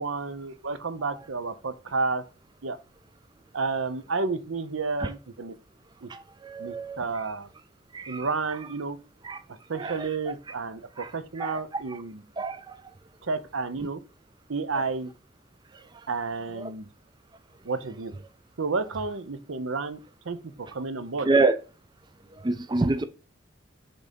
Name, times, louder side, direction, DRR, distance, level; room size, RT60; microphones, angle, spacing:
voice 1, 0.0-2.2 2.6-2.8 3.5-5.5 6.0-6.1 6.6-7.5 8.1-9.0 9.7-12.2 13.2-14.0 14.5-15.1 16.1-16.9 17.6-18.1 18.6-20.0 20.2-21.3, right 4 dB, 75° right, 0.7 m, -31 dB
voice 2, 6.5-7.0 7.9-8.2 9.3-9.4 9.8-9.9 11.4-11.6 12.4-12.6 21.3-21.5 22.4-23.0, right 3 dB, 20° right, 0.4 m, -25 dB
6.1 x 3.8 x 5.2 m
head